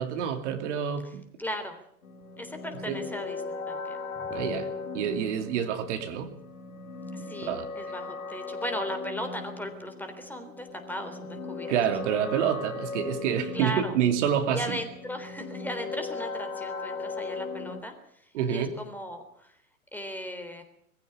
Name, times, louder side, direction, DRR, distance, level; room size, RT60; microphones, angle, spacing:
voice 1, 0.0-1.3 2.9-3.0 4.3-4.7 4.9-6.3 7.5-7.6 11.7-14.8 18.3-18.7, right 8 dB, 55° right, 6 dB, 2.7 m, -28 dB
voice 2, 1.4-1.8 2.4-4.3 7.1-11.7 13.5-14.0 14.5-17.9 18.5-19.6 19.9-20.6, equal, 5° left, 6 dB, 3.5 m, -37 dB
sound 1, 2.0-17.8, left 4 dB, 75° left, 2.8 m, -38 dB
21.5 x 15.5 x 8.7 m, 0.69 s
figure-of-eight pair, 100°, 43 cm